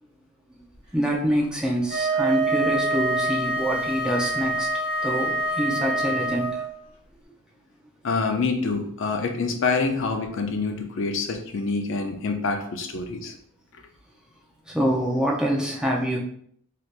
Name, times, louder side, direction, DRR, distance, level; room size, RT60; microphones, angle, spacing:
voice 1, 0.9-4.7 5.0-6.6 14.7-16.2, equal, 5° right, -2 dB, 0.5 m, -25 dB
Wind instrument woodwind instrument, 1.9-6.8, right 2 dB, 25° right, 1.4 m, -26 dB
voice 2, 8.0-13.3, left 4 dB, 55° left, 4 dB, 0.5 m, -26 dB
3.3 x 2.8 x 2.4 m, 0.65 s
head